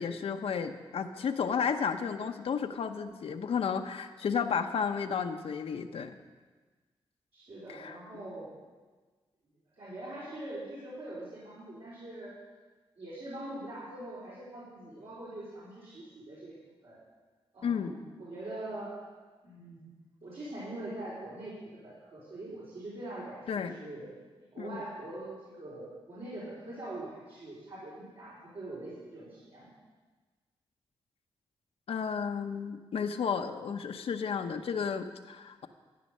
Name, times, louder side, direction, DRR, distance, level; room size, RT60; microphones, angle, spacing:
voice 1, 0.0-6.1 7.7-8.0 17.6-17.9 23.5-23.7 24.6-24.8 31.9-35.7, left 6 dB, 75° left, 6 dB, 0.8 m, -32 dB
voice 2, 7.3-8.5 9.8-12.4 13.0-16.5 16.8-17.0 17.5-19.0 19.4-19.9 20.2-21.6 21.8-24.1 24.4-29.7, right 1 dB, 70° right, -9 dB, 4.3 m, -43 dB
13.5 x 9.5 x 6.5 m, 1.4 s
cardioid pair, 90°, 10 cm